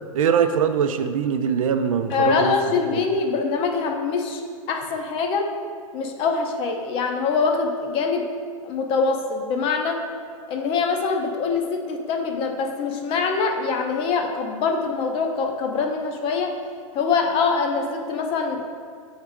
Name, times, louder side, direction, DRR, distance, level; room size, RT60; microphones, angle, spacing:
voice 1, 0.1-2.5 2.9-3.0, right 7 dB, 75° right, 8 dB, 0.5 m, -22 dB
voice 2, 2.1-5.5 5.9-8.2 8.6-10.0 10.5-16.5 16.9-18.7, left 4 dB, 30° left, 3 dB, 0.6 m, -24 dB
7.7 x 3.6 x 3.6 m, 2.1 s
hypercardioid pair, 130°, 17 cm